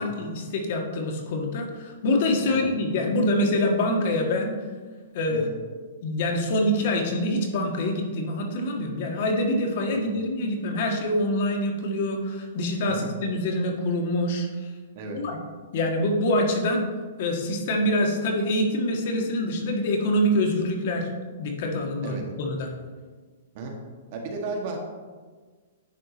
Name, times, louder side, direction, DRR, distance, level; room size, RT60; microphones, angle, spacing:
voice 1, 0.0-4.5 5.1-5.5 6.0-14.5 15.1-15.4 15.7-16.9 17.2-21.1 21.4-22.7, left 1 dB, 50° left, 2 dB, 1.6 m, -25 dB
voice 2, 24.1-24.8, right 3 dB, 45° right, 1 dB, 1.6 m, -34 dB
10.0 x 4.6 x 4.1 m, 1.4 s
hypercardioid pair, 150°, 0 cm